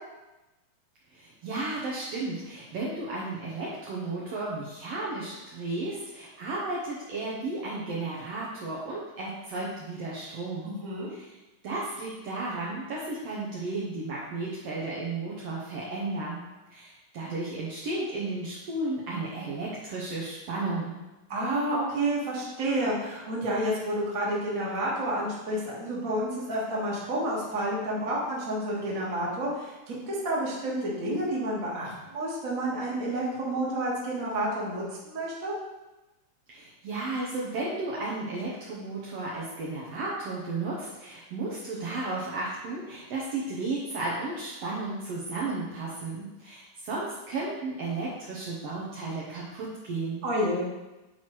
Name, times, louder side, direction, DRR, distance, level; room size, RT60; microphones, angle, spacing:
voice 1, 1.1-10.8 11.1-11.2 11.6-16.4 16.7-21.0 36.5-50.2, right 2 dB, 90° right, -5 dB, 1.4 m, -34 dB
voice 2, 10.6-11.1 21.3-35.5 50.2-50.7, right 1 dB, 45° right, -5 dB, 1.0 m, -30 dB
9.2 x 4.4 x 3.1 m, 1.0 s
omnidirectional pair, 4.1 m